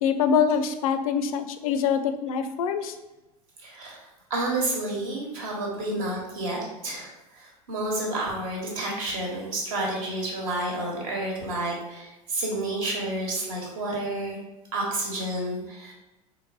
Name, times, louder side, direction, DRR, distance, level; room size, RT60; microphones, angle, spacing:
voice 1, 0.0-3.0, left 7 dB, 70° left, 9 dB, 0.4 m, -24 dB
voice 2, 3.6-14.4 14.7-15.9, right 2 dB, 65° right, -2 dB, 1.2 m, -30 dB
3.9 x 3.2 x 2.6 m, 1.0 s
figure-of-eight pair, 75°, 19 cm